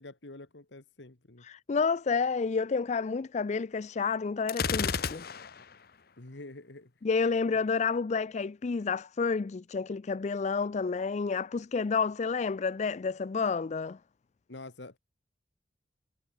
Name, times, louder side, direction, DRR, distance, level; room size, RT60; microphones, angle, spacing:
voice 1, 0.0-1.4 6.2-6.9 14.5-15.0, left 2 dB, 85° left, 1.8 m, -47 dB
voice 2, 1.4-5.3 7.0-14.0, left 5 dB, 40° left, 0.4 m, -30 dB
Gunshot gunfire, 4.5-5.7, left 6 dB, 60° left, 1.0 m, -31 dB
head